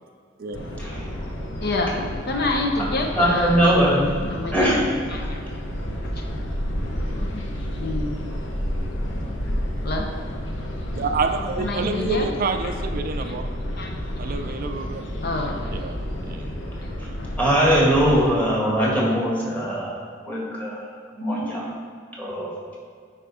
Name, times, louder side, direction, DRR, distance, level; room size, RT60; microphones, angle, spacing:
voice 1, 0.4-0.7 11.0-13.5 14.2-15.1 15.7-16.5, right 4 dB, 50° right, 7 dB, 0.4 m, -28 dB
sound 1, 0.5-18.3, equal, 75° left, 1.0 m, -30 dB
voice 2, 1.6-2.0 2.3-4.8 5.1-5.4 6.2-6.3 7.2-7.4 7.8-8.1 9.8-10.1 11.6-12.3 12.6-12.7 13.2-13.3 13.8-13.9 15.2-15.8, left 2 dB, 55° left, 2 dB, 0.7 m, -27 dB
voice 3, 3.1-4.0 4.5-4.8 17.4-20.9 21.2-21.7 22.2-22.5, equal, 10° left, -5 dB, 1.9 m, -21 dB
10.0 x 5.0 x 3.6 m, 2.1 s
head